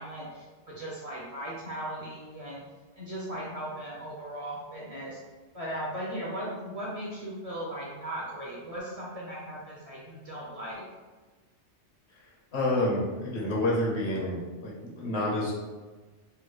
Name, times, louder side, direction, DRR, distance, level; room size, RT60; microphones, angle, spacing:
voice 1, 0.0-2.6 3.0-5.2 5.5-10.8, right 1 dB, 40° right, -5 dB, 0.6 m, -37 dB
voice 2, 12.5-15.5, left 1 dB, 70° left, -4 dB, 1.2 m, -28 dB
3.4 x 2.3 x 3.1 m, 1.3 s
omnidirectional pair, 1.2 m